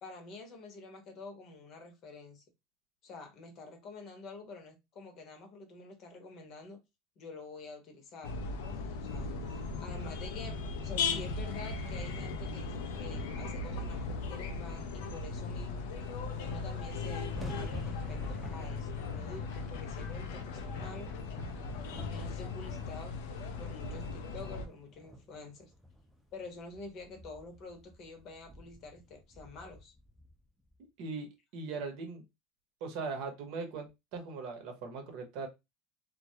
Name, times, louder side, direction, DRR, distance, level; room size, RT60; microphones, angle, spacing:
voice 1, 0.0-2.4 3.0-6.8 7.2-8.3 8.6-15.9 16.4-21.1 22.0-23.2 23.6-25.7 26.3-29.9, left 3 dB, 50° left, 0.8 m, -48 dB
sound 1, 8.2-24.7, left 4 dB, 80° left, 0.4 m, -37 dB
voice 2, 9.6-9.9 31.0-32.2 32.8-35.5, right 4 dB, 65° right, 0.8 m, -40 dB
sound 2, 16.5-30.8, equal, ahead, 0.6 m, -50 dB
2.2 x 2.1 x 2.7 m
supercardioid pair, 115°, 0 cm